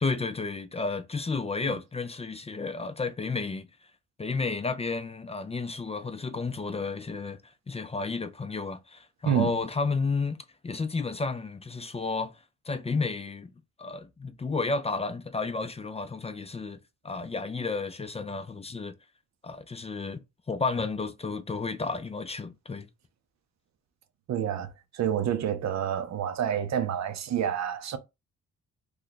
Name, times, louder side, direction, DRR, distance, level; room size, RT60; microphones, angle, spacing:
voice 1, 0.0-3.7 4.2-10.4 10.6-12.3 12.7-13.5 13.8-16.8 17.0-18.9 19.4-20.2 20.5-22.9, left 4 dB, 20° left, 0.4 m, -32 dB
voice 2, 24.3-28.0, right 9 dB, 65° right, 0.6 m, -28 dB
3.1 x 2.2 x 4.0 m
cardioid pair, 75°, 29 cm